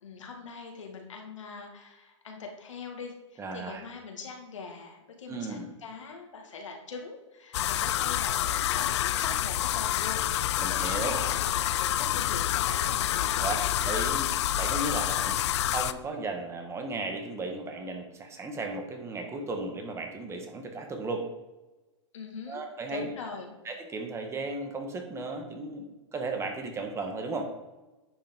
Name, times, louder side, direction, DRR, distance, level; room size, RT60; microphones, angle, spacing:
voice 1, 0.0-13.3 15.2-15.5 22.1-23.6, left 4 dB, 85° left, 2 dB, 1.8 m, -42 dB
voice 2, 3.4-3.8 5.3-5.7 10.6-11.1 13.4-15.3 15.7-21.3 22.5-23.1 23.6-27.5, right 3 dB, 20° right, 4 dB, 1.2 m, -35 dB
sound 1, 7.5-15.9, left 12 dB, 65° left, 0.5 m, -28 dB
10.0 x 5.4 x 3.6 m, 1.1 s
hypercardioid pair, 125°, 15 cm